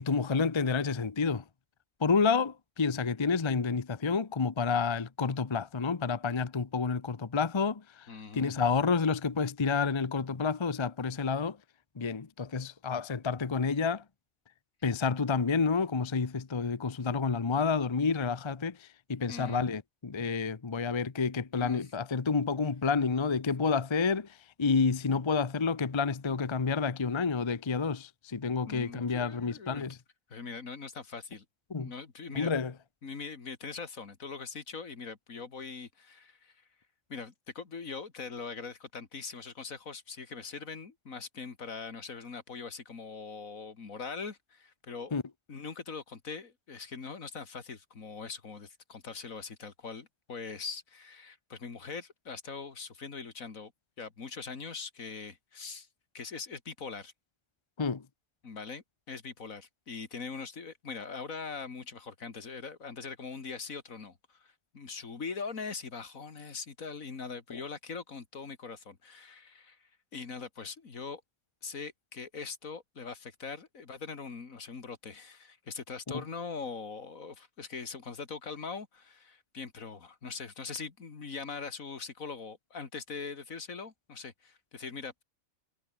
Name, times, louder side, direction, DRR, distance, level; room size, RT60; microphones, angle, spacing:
voice 1, 0.0-1.4 2.0-11.6 12.0-14.0 14.8-30.0 31.7-31.9 32.3-32.7 45.1-45.2 57.8-58.1 67.5-67.6 76.1-76.2, left 5 dB, 25° left, 0.7 m, -29 dB
voice 2, 8.1-8.5 19.3-19.6 21.5-21.8 28.7-29.9 30.3-31.4 31.8-32.5 33.0-36.6 37.1-45.2 45.5-53.7 54.0-55.9 56.1-57.1 58.4-71.2 71.6-85.2, left 5 dB, 70° left, 2.6 m, -42 dB
omnidirectional pair, 1.5 m